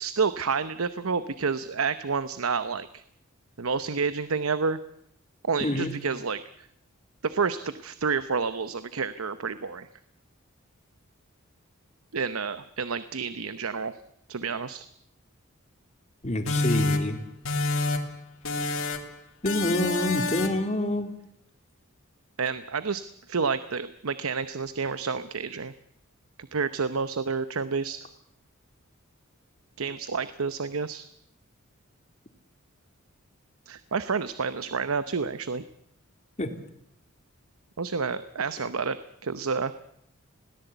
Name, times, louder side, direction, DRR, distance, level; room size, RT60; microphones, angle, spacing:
voice 1, 0.0-2.9 3.6-4.8 5.5-6.4 7.2-9.9 12.1-14.0 14.3-14.8 22.4-25.7 26.5-28.1 29.8-31.1 33.7-35.6 37.8-39.7, right 5 dB, 85° right, 13 dB, 0.8 m, -29 dB
voice 2, 5.6-5.9 16.2-17.2 19.4-21.1 36.4-36.5, left 1 dB, 30° left, 6 dB, 2.3 m, -27 dB
sound 1, 16.5-18.2 18.4-19.1 19.4-20.7, left 3 dB, 75° left, 2.6 m, -28 dB
21.0 x 17.5 x 8.1 m, 0.73 s
head